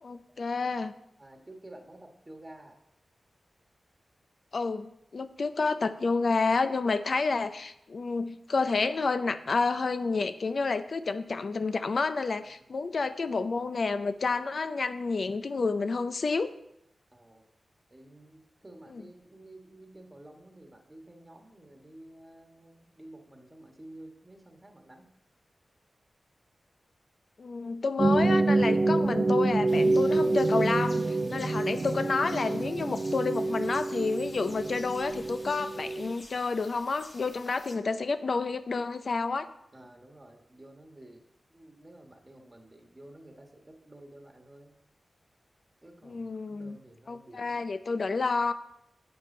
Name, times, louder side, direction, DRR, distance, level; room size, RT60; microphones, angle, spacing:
voice 1, 0.0-0.9 4.5-16.5 18.9-19.0 27.4-39.5 46.0-46.8 47.1-48.5, left 4 dB, 60° left, 10 dB, 0.5 m, -30 dB
voice 2, 1.2-2.8 12.6-12.9 17.1-17.5 17.9-25.1 39.7-41.2 41.5-44.7 45.8-47.6, right 1 dB, 20° right, 3 dB, 1.4 m, -51 dB
sound 1, 28.0-36.1, right 2 dB, 40° right, 0.3 m, -27 dB
sound 2, 29.7-37.8, left 2 dB, 35° left, 1.2 m, -51 dB
7.8 x 7.7 x 5.4 m, 0.80 s
wide cardioid pair, 95°, 0 cm